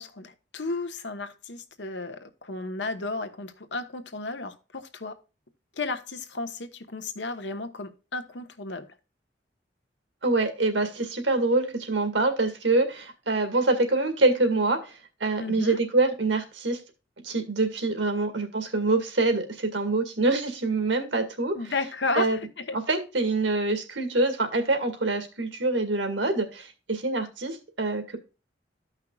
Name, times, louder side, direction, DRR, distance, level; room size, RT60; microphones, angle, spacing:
voice 1, 0.0-5.1 5.8-8.9 15.4-15.8 21.5-22.8, left 3 dB, 75° left, 1.2 m, -33 dB
voice 2, 10.2-14.9 15.2-16.8 17.2-21.6 22.1-22.4 22.7-28.2, right 2 dB, 85° right, 2.1 m, -25 dB
14.5 x 5.7 x 2.4 m
head